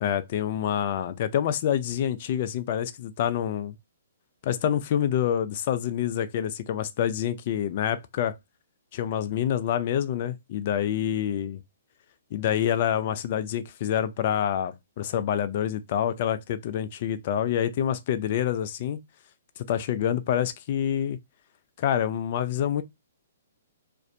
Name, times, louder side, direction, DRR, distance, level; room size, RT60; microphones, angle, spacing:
voice 1, 0.0-3.7 4.4-8.3 8.9-11.6 12.3-19.0 19.6-21.2 21.8-22.8, left 10 dB, 45° left, 0.3 m, -27 dB
2.5 x 2.0 x 2.5 m
figure-of-eight pair, 125°, 0 cm